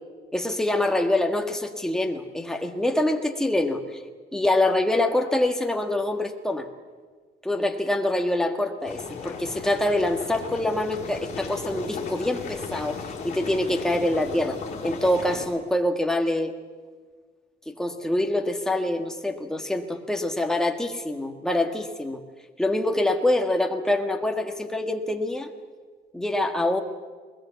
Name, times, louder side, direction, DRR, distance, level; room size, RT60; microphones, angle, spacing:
voice 1, 0.3-4.0 4.3-6.7 7.4-14.6 14.8-16.5 17.7-22.2 22.6-25.5 26.1-26.8, left 1 dB, 5° left, 4 dB, 1.6 m, -25 dB
sound 1, 8.8-15.4, left 5 dB, 40° left, 5.1 m, -36 dB
21.0 x 21.0 x 8.3 m, 1.5 s
cardioid pair, 160°, 17 cm